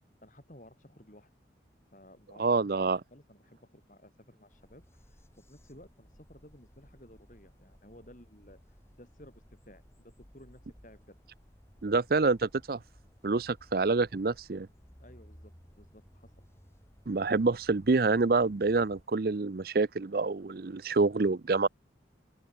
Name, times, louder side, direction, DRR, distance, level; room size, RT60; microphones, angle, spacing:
voice 1, 0.2-1.3 1.9-11.2 15.0-16.5, left 1 dB, 45° left, 5.9 m, -56 dB
voice 2, 2.4-3.0 11.8-12.8 13.2-14.7 17.1-21.7, right 3 dB, 50° right, 0.5 m, -27 dB
sound 1, 4.5-19.0, equal, 15° left, 5.9 m, -58 dB
open air
head